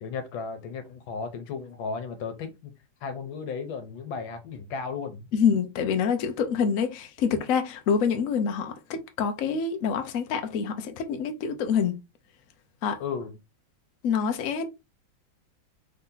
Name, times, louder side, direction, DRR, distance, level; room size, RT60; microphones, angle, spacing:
voice 1, 0.0-2.7 3.0-5.2 13.0-13.3, left 5 dB, 80° left, 1.6 m, -35 dB
voice 2, 5.3-12.0 12.8-13.0 14.0-14.7, left 6 dB, 65° left, 0.8 m, -26 dB
4.0 x 2.8 x 3.8 m
omnidirectional pair, 2.2 m